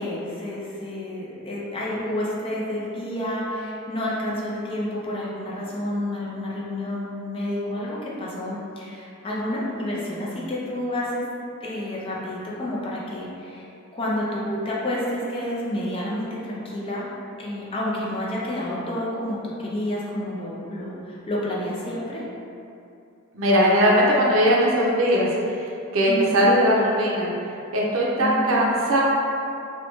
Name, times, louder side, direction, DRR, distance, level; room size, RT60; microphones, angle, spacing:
voice 1, 0.0-11.2 11.6-13.7 13.9-17.1 17.4-22.2 26.0-26.4 28.2-28.5, left 1 dB, 25° left, -5 dB, 0.4 m, -29 dB
voice 2, 23.3-25.3 25.6-27.3 27.7-29.0, equal, 70° right, -4 dB, 0.5 m, -20 dB
2.6 x 2.1 x 2.9 m, 2.6 s
head